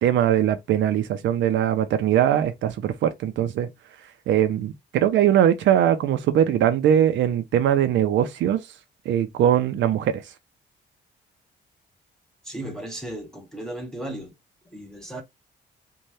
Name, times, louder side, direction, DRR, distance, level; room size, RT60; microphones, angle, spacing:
voice 1, 0.0-3.7 4.3-8.6 9.1-10.2, right 10 dB, 90° right, 0.5 m, -21 dB
voice 2, 12.4-14.3 14.6-15.2, right 1 dB, 5° left, 0.6 m, -35 dB
2.7 x 2.2 x 3.1 m
cardioid pair, 125°, 19 cm